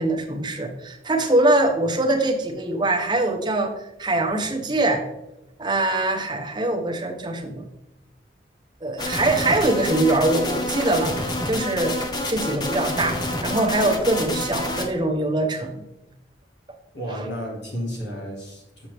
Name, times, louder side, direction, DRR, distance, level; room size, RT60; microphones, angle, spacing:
voice 1, 0.0-3.7 4.0-5.0 5.6-7.6 8.8-12.0 12.3-15.8 17.1-17.2, right 2 dB, 25° right, 3 dB, 0.8 m, -23 dB
sound 1, 9.0-14.9, left 1 dB, 25° left, 0.7 m, -28 dB
voice 2, 16.9-18.9, equal, 75° left, -2 dB, 2.1 m, -32 dB
6.9 x 5.7 x 3.3 m, 0.93 s
head